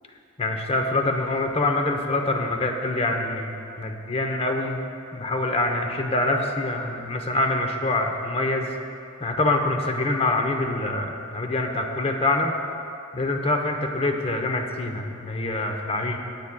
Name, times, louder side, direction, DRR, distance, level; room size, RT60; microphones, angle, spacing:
voice 1, 0.4-4.8 5.1-8.7 9.2-12.5 13.1-16.2, left 2 dB, 25° left, 4 dB, 0.8 m, -25 dB
23.0 x 8.6 x 2.2 m, 2.6 s
head